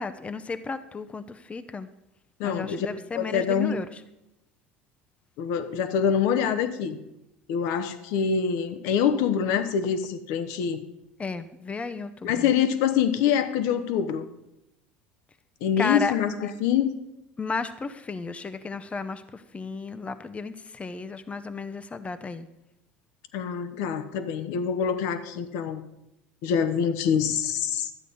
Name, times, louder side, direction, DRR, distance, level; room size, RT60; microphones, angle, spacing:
voice 1, 0.0-1.9 2.4-4.0 11.2-12.5 15.8-16.1 17.4-22.5, left 4 dB, 20° left, 11 dB, 0.7 m, -33 dB
voice 2, 2.4-2.9 3.1-3.8 5.4-7.0 7.5-10.8 12.2-14.3 15.6-16.3 16.6-17.0 23.3-25.8 26.4-27.9, left 7 dB, 70° left, 11 dB, 1.0 m, -25 dB
12.0 x 8.3 x 5.4 m, 0.88 s
hypercardioid pair, 80°, 6 cm